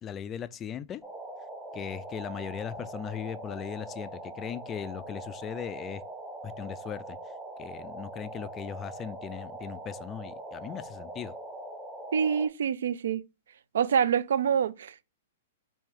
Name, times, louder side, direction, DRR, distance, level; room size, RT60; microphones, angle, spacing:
voice 1, 0.0-1.0 1.7-6.0 6.4-7.2 7.6-11.3, left 9 dB, 25° left, 0.3 m, -38 dB
sound 1, 1.0-12.5, right 2 dB, 5° right, 1.0 m, -42 dB
voice 2, 12.1-13.2 13.7-15.0, right 7 dB, 65° right, 0.3 m, -26 dB
4.4 x 2.7 x 3.4 m
figure-of-eight pair, 110°, 0 cm